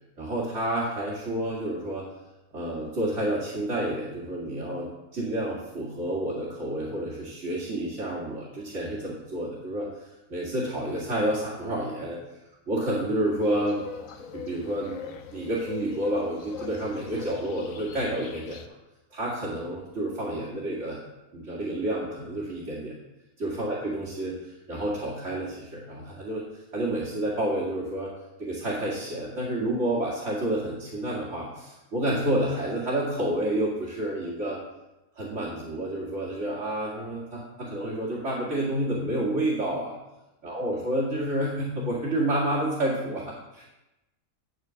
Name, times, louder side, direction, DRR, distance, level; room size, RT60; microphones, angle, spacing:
voice 1, 0.2-2.1 2.5-9.9 10.3-12.2 12.7-13.9 14.3-18.6 19.1-21.0 21.3-22.9 23.4-24.4 24.7-26.4 26.7-28.1 28.4-34.6 35.2-39.9 40.4-43.6, right 1 dB, 50° right, -5 dB, 2.4 m, -29 dB
sound 1, 13.4-18.7, left 7 dB, 65° left, 1.1 m, -41 dB
11.0 x 4.4 x 7.5 m, 0.96 s
omnidirectional pair, 1.6 m